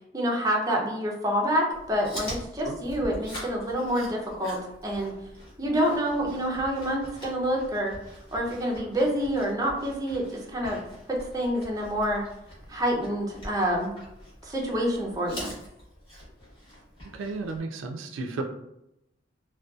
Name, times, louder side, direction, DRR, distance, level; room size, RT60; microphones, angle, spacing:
voice 1, 0.1-5.2 5.6-8.0 8.3-10.8 11.1-12.2 12.7-13.9 14.4-15.5, equal, 20° right, -2 dB, 0.4 m, -27 dB
Chewing mastication, 1.7-17.6, equal, 30° left, 1.0 m, -44 dB
voice 2, 17.1-18.4, right 3 dB, 80° right, 5 dB, 0.3 m, -33 dB
2.6 x 2.2 x 2.3 m, 0.85 s
head